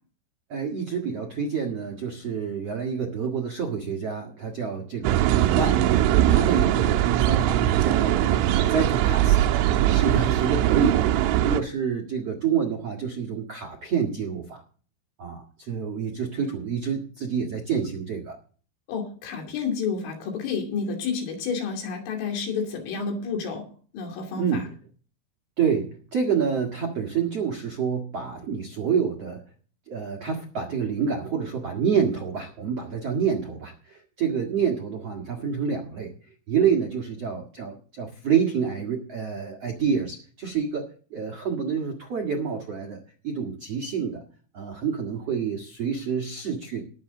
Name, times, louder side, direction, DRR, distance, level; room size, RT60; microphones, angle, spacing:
voice 1, 0.5-8.3 8.7-9.5 9.8-14.6 15.2-18.4 24.3-24.7 25.6-29.4 29.9-36.1 36.5-40.8 41.1-43.0 43.2-44.2 44.5-46.8, right 6 dB, 75° right, 1 dB, 1.4 m, -28 dB
sound 1, 5.0-11.6, right 12 dB, 90° right, 3.4 m, -21 dB
voice 2, 18.9-23.7 23.9-24.6, left 5 dB, 75° left, 2 dB, 5.2 m, -30 dB
20.0 x 7.6 x 3.8 m, 0.42 s
omnidirectional pair, 5.8 m